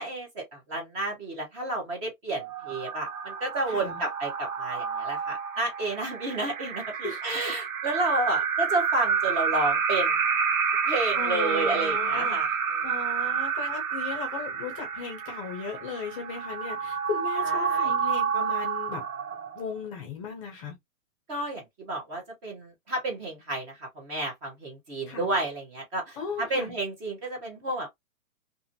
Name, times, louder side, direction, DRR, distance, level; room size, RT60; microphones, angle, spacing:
voice 1, 0.0-10.1 10.9-12.5 17.4-17.9 21.3-27.9, right 2 dB, 20° right, 0.8 m, -31 dB
sound 1, 2.4-19.8, right 6 dB, 85° right, 0.8 m, -29 dB
voice 2, 3.7-4.0 7.0-7.5 11.2-12.6 12.8-19.1 19.5-20.7 25.0-25.3 26.2-26.7, left 5 dB, 25° left, 0.6 m, -36 dB
2.6 x 2.5 x 2.5 m
hypercardioid pair, 155°, 41 cm